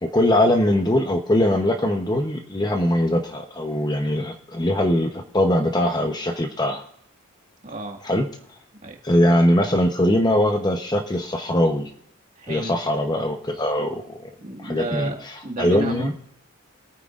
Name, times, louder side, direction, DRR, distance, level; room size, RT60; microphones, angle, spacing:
voice 1, 0.0-6.8 8.0-8.3 9.0-11.9 12.5-14.3 14.6-15.1 15.6-16.1, left 1 dB, 20° left, 4 dB, 0.9 m, -21 dB
voice 2, 7.6-8.0 8.7-9.0 12.4-12.8 14.4-16.1, right 2 dB, 35° right, 2 dB, 1.8 m, -32 dB
27.0 x 9.3 x 2.5 m, 0.73 s
head